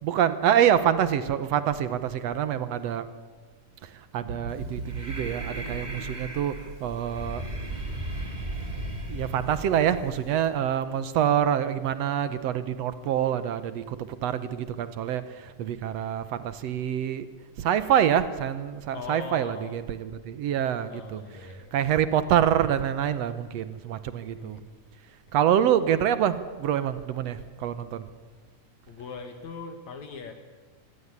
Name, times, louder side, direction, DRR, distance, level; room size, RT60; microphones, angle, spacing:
voice 1, 0.0-3.1 3.8-7.4 9.1-17.3 17.6-21.2 21.7-24.6 25.3-28.1, right 10 dB, 70° right, 13 dB, 1.7 m, -26 dB
sound 1, 4.2-8.3 8.8-9.0, right 4 dB, 50° right, 2.2 m, -39 dB
Breathing, 4.5-10.5, right 1 dB, 15° right, 2.9 m, -37 dB
voice 2, 18.9-19.7 20.9-21.7 24.4-24.6 28.9-30.3, left 5 dB, 65° left, 7 dB, 2.7 m, -40 dB
25.0 x 16.5 x 9.7 m, 1.4 s
omnidirectional pair, 3.8 m